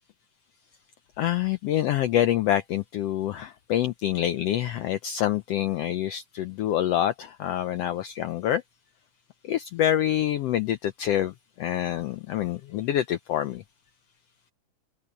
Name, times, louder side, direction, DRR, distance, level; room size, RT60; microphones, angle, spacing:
voice 1, 1.2-8.6 9.4-11.3 11.6-13.6, left 11 dB, 80° left, 1.4 m, -26 dB
open air
omnidirectional pair, 3.6 m